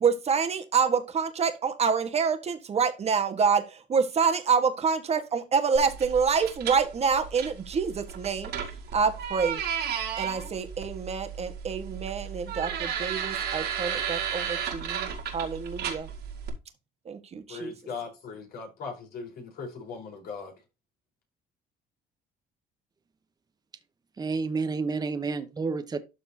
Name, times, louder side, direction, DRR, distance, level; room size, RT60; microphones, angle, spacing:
voice 1, 0.0-3.6 3.9-8.5 8.9-9.6 10.2-16.1 17.1-17.7, right 6 dB, 40° right, 1.5 m, -27 dB
sound 1, 5.8-16.5, right 8 dB, 75° right, 2.0 m, -34 dB
voice 2, 17.5-20.5, left 5 dB, 65° left, 4.4 m, -39 dB
voice 3, 24.2-26.0, right 4 dB, 25° right, 0.9 m, -30 dB
12.5 x 4.2 x 2.8 m
cardioid pair, 110°, 17 cm